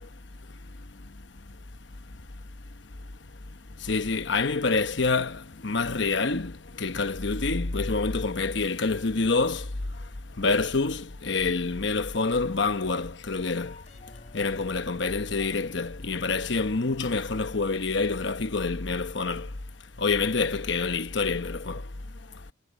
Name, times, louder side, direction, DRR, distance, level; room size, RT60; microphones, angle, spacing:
voice 1, 3.9-6.5 6.8-9.6 10.4-13.7 14.3-19.5 20.0-21.8, left 3 dB, 60° left, 1.0 m, -27 dB
sound 1, 13.4-17.8, left 2 dB, 35° left, 3.2 m, -52 dB
head